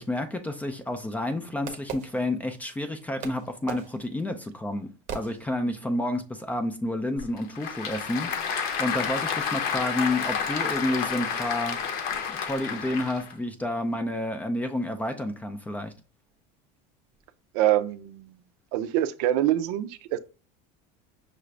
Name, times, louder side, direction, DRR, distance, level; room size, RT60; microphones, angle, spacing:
voice 1, 0.0-11.8 12.4-15.9, left 1 dB, 10° left, 0.3 m, -30 dB
Fireworks, 0.5-2.8 3.2-5.9, right 7 dB, 40° right, 0.7 m, -41 dB
Applause / Crowd, 7.2-13.3, left 6 dB, 50° left, 0.7 m, -30 dB
voice 2, 17.5-18.4 18.7-20.2, right 13 dB, 75° right, 0.5 m, -25 dB
5.7 x 2.5 x 3.2 m
cardioid pair, 155°, 20 cm